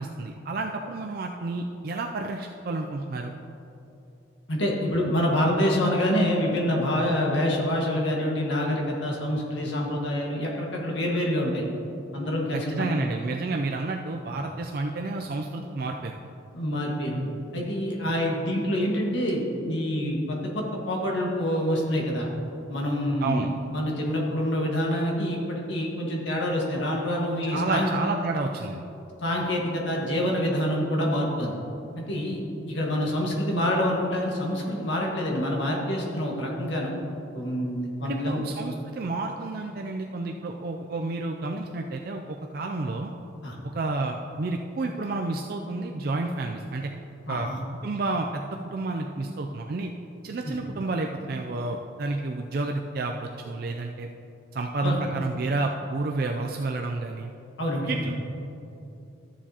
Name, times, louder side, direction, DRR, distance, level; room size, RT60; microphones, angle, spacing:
voice 1, 0.0-3.3 12.5-16.1 23.2-23.5 27.4-28.8 38.0-43.1 43.7-46.9 47.3-47.5 47.8-49.9 50.2-54.1 54.5-57.3 57.9-58.2, right 3 dB, 50° right, 2 dB, 0.4 m, -30 dB
voice 2, 4.5-11.6 12.1-12.8 16.5-22.3 22.7-27.9 29.2-31.5 32.0-36.9 37.3-38.4 43.4-43.5 47.3-47.6 50.4-50.5 54.8-55.0 57.6-58.0, equal, 65° left, -2 dB, 1.6 m, -26 dB
13.0 x 7.2 x 2.9 m, 2.9 s
head